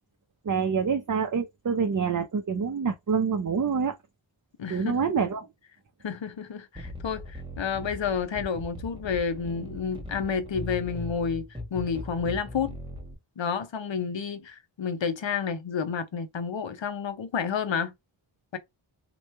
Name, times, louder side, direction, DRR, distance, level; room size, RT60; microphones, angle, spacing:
voice 1, 0.4-3.9 4.7-5.5, right 6 dB, 40° right, 0.6 m, -26 dB
voice 2, 4.6-5.0 6.0-12.8 13.4-17.9 18.5-18.6, left 6 dB, 65° left, 0.7 m, -30 dB
sound 1, 6.8-13.2, left 1 dB, 10° right, 1.1 m, -39 dB
2.9 x 2.3 x 3.2 m
wide cardioid pair, 50°, 48 cm